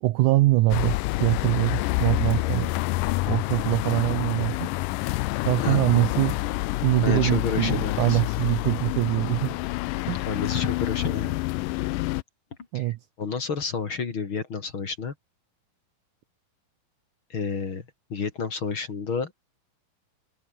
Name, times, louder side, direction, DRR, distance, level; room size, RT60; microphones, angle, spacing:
voice 1, 0.0-2.7 3.3-4.7 5.4-6.4 6.8-9.6 10.1-10.2 12.7-13.0, right 17 dB, 80° right, 1.8 m, -23 dB
sound 1, 0.7-12.2, left 20 dB, 85° left, 1.9 m, -28 dB
voice 2, 7.0-8.2 10.3-11.3 12.7-15.1 17.3-17.8 18.1-19.3, left 5 dB, 40° left, 2.6 m, -30 dB
omnidirectional pair, 4.4 m